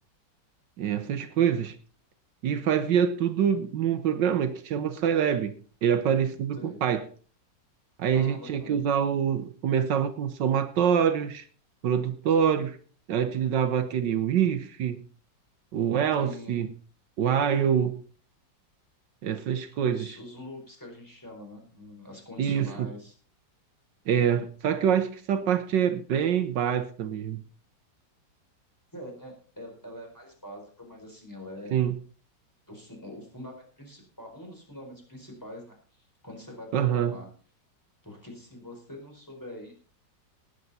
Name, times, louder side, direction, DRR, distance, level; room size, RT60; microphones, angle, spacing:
voice 1, 0.8-1.7 2.4-5.5 5.8-7.0 8.0-11.4 11.8-12.8 13.1-15.0 15.7-16.7 17.2-18.0 19.2-20.1 22.4-22.9 24.1-27.4 31.7-31.9 36.7-37.2, right 8 dB, 75° right, 1.6 m, -25 dB
voice 2, 8.1-8.8 16.2-16.7 19.8-23.1 28.9-31.8 32.7-37.2 38.0-39.7, left 1 dB, 10° left, 4.6 m, -44 dB
19.0 x 8.3 x 4.2 m
omnidirectional pair, 2.0 m